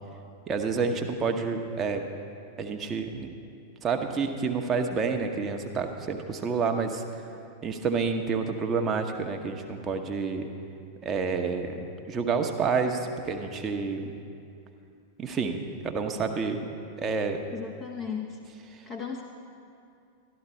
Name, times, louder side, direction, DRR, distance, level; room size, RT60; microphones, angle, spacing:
voice 1, 0.5-2.0 2.6-3.3 3.8-7.2 7.6-10.5 11.0-14.1 15.2-16.6 17.0-17.4, right 5 dB, 25° right, 4 dB, 1.0 m, -29 dB
voice 2, 17.5-18.4 18.9-19.2, left 6 dB, 30° left, 0 dB, 0.9 m, -35 dB
13.0 x 12.0 x 4.4 m, 2.5 s
figure-of-eight pair, 90°, 0 cm